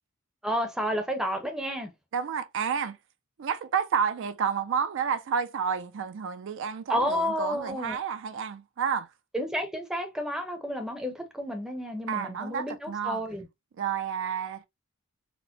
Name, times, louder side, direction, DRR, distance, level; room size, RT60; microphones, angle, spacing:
voice 1, 0.4-1.9 6.9-8.0 9.3-13.5, equal, 5° right, 0.6 m, -31 dB
voice 2, 2.1-3.0 3.4-9.1 12.1-13.2 13.8-14.7, right 7 dB, 55° right, 0.4 m, -30 dB
4.2 x 2.1 x 2.7 m
head